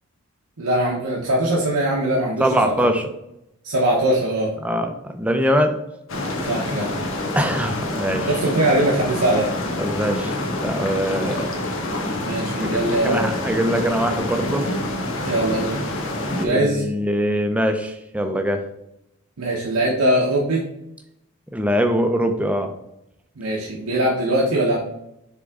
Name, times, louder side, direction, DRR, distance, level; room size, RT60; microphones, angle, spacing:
voice 1, 0.6-2.9 3.6-4.5 6.4-7.0 8.3-9.5 12.2-13.3 15.2-15.8 16.4-16.8 19.4-20.6 23.4-24.8, right 1 dB, 90° right, -3 dB, 1.0 m, -21 dB
voice 2, 2.4-3.0 4.6-5.8 7.4-8.3 9.8-10.3 10.6-11.5 12.6-14.7 16.3-18.6 21.5-22.7, equal, 5° right, 5 dB, 0.5 m, -22 dB
sound 1, 6.1-16.5, left 1 dB, 60° left, 0.9 m, -27 dB
7.1 x 3.7 x 3.6 m, 0.83 s
head